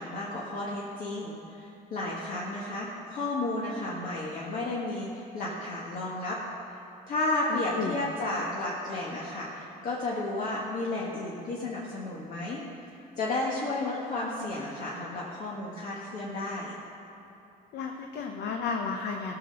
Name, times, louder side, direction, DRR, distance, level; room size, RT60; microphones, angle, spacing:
voice 1, 0.0-6.4 6.7-6.8 7.1-12.6 13.2-16.7, left 2 dB, 55° left, -5 dB, 1.6 m, -32 dB
voice 2, 7.5-8.0 17.7-19.3, left 5 dB, 70° left, 3 dB, 0.9 m, -33 dB
15.5 x 6.0 x 6.7 m, 2.9 s
cardioid pair, 110°, 17 cm